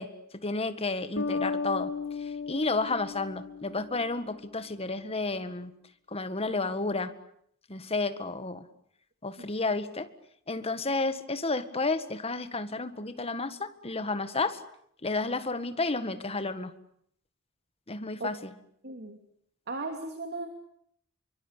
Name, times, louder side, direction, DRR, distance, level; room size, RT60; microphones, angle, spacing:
voice 1, 0.0-1.9 2.2-5.7 6.1-7.1 7.7-8.6 9.2-10.1 10.5-14.6 15.0-16.7 17.9-18.5, left 3 dB, 30° left, 11 dB, 1.8 m, -31 dB
sound 1, 1.2-4.5, left 5 dB, 70° left, 3.0 m, -35 dB
voice 2, 18.8-19.2 19.7-20.5, right 3 dB, 50° right, 4 dB, 3.0 m, -36 dB
28.0 x 24.0 x 8.4 m, 0.70 s
head